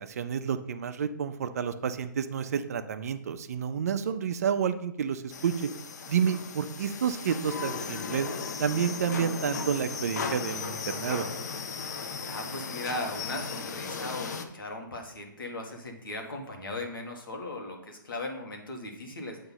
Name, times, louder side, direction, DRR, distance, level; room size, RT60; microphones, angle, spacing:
voice 1, 0.0-5.7 6.1-8.3 8.6-11.3, right 7 dB, 45° right, 10 dB, 0.5 m, -30 dB
sound 1, 5.3-14.4, left 5 dB, 55° left, 0.6 m, -36 dB
voice 2, 12.2-19.4, left 2 dB, 80° left, 2 dB, 1.6 m, -37 dB
8.0 x 3.0 x 5.6 m, 0.75 s
hypercardioid pair, 160°, 11 cm